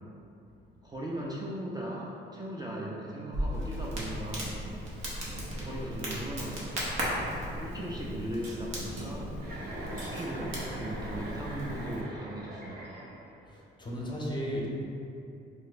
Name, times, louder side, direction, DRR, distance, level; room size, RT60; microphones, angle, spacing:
voice 1, 0.8-4.6 5.6-6.9 7.6-9.3 9.9-12.9, right 1 dB, 20° right, -5 dB, 0.3 m, -38 dB
Crackle, 3.3-12.0, equal, 85° right, 0.8 m, -36 dB
sound 1, 8.4-9.1 10.0-10.4 11.0-11.4, right 1 dB, 65° right, 1.1 m, -49 dB
Chuckle chortle, 9.4-13.4, right 1 dB, 50° right, 0.7 m, -42 dB
voice 2, 13.5-14.7, equal, 25° left, -4 dB, 0.6 m, -35 dB
2.5 x 2.1 x 4.0 m, 2.7 s
cardioid pair, 90°, 20 cm